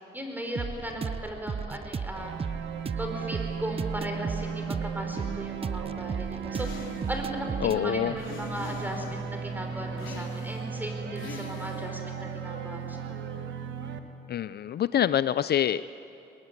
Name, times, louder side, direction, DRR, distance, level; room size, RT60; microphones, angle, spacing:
voice 1, 0.1-2.4 2.9-13.4, equal, 10° right, 3 dB, 5.3 m, -37 dB
sound 1, 0.5-10.2, right 6 dB, 30° right, 0.6 m, -36 dB
sound 2, 2.1-14.0, right 6 dB, 70° right, 1.9 m, -36 dB
sound 3, 6.5-7.3 8.2-9.2 10.0-10.7 11.2-11.9, left 5 dB, 80° left, 3.9 m, -43 dB
voice 2, 7.6-8.1 14.3-15.8, left 10 dB, 55° left, 15 dB, 0.5 m, -25 dB
22.5 x 21.5 x 9.7 m, 2.7 s
cardioid pair, 90°, 20 cm